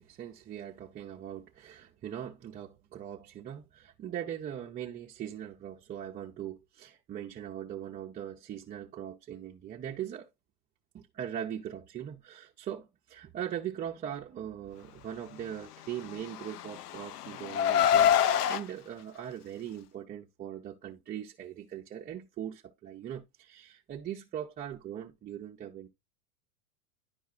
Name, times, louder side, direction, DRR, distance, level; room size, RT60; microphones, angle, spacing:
voice 1, 0.0-10.3 10.9-25.9, right 10 dB, 20° right, 0.6 m, -40 dB
Car, 16.1-18.6, left 9 dB, 90° left, 0.6 m, -26 dB
10.5 x 4.6 x 2.4 m
hypercardioid pair, 125°, 45 cm